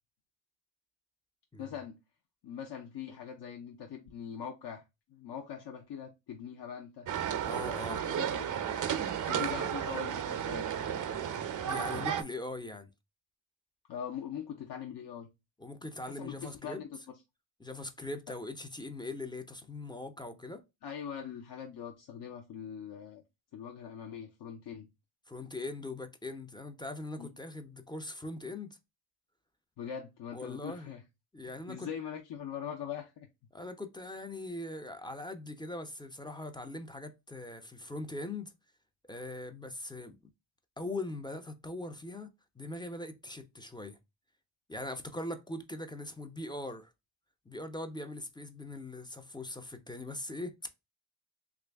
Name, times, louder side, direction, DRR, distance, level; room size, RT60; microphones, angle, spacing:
voice 1, 1.6-1.9 2.4-4.8 5.1-7.1 7.8-8.5 9.3-10.7 13.9-15.3 16.0-16.9 20.8-23.2 23.5-24.9 27.2-27.3 29.8-31.0 31.4-33.3, left 8 dB, 60° left, 0.6 m, -42 dB
sound 1, 7.1-12.2, right 9 dB, 45° right, 0.5 m, -33 dB
voice 2, 7.4-8.0 9.2-9.7 11.6-12.9 15.6-16.8 17.6-20.6 25.3-28.8 30.3-30.9 31.3-31.9 33.5-38.5 39.1-40.2 40.8-42.3 42.6-44.0 44.7-46.9 47.5-50.7, left 2 dB, 10° left, 0.4 m, -41 dB
3.1 x 2.5 x 3.3 m
cardioid pair, 70°, 46 cm